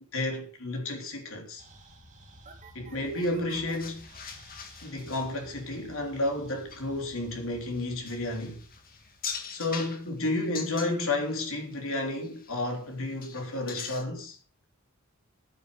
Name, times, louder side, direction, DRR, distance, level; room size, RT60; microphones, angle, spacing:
voice 1, 0.1-1.6 2.7-4.1 4.8-8.6 9.5-14.4, left 2 dB, 65° left, 3.6 m, -31 dB
sound 1, 1.6-10.1, right 1 dB, 35° right, 2.8 m, -52 dB
sound 2, 3.0-11.4 11.7-12.8 13.0-14.0, left 6 dB, 40° left, 1.9 m, -43 dB
10.5 x 9.3 x 5.3 m
head